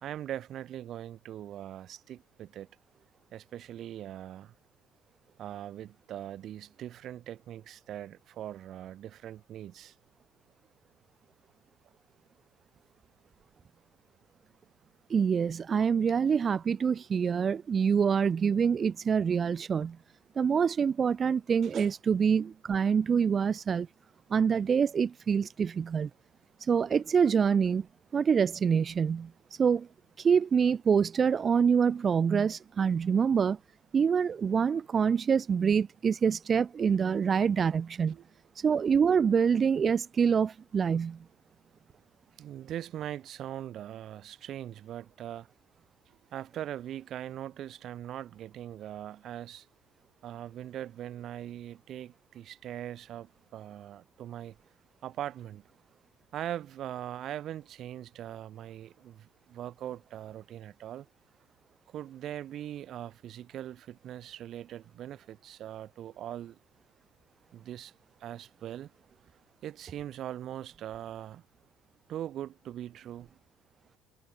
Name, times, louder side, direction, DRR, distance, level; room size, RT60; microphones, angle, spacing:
voice 1, 0.0-2.7 3.3-4.5 5.4-9.9 21.6-21.9 38.1-38.2 42.4-45.5 46.1-49.7 50.2-54.6 55.0-55.6 56.3-61.1 61.9-66.6 67.5-67.9 68.2-68.9 69.6-71.4 72.1-73.4, right 11 dB, 55° right, 1.8 m, -41 dB
voice 2, 15.1-20.0 20.4-23.9 24.3-26.1 26.6-27.9 28.1-29.3 29.6-29.9 30.2-33.6 33.9-38.2 38.6-41.2, right 6 dB, 35° right, 0.8 m, -26 dB
hypercardioid pair, 70°, 0 cm